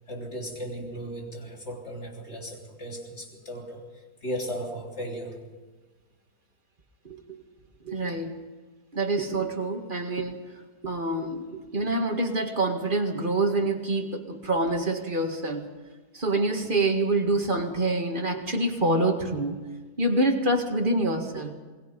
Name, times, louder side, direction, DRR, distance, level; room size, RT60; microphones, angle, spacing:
voice 1, 0.1-5.5, equal, 45° left, 0 dB, 3.8 m, -36 dB
voice 2, 7.0-7.4 7.8-8.3 8.9-15.8 16.1-19.7 20.0-21.5, right 2 dB, 30° right, 4 dB, 2.1 m, -26 dB
27.5 x 21.0 x 5.4 m, 1.3 s
omnidirectional pair, 1.7 m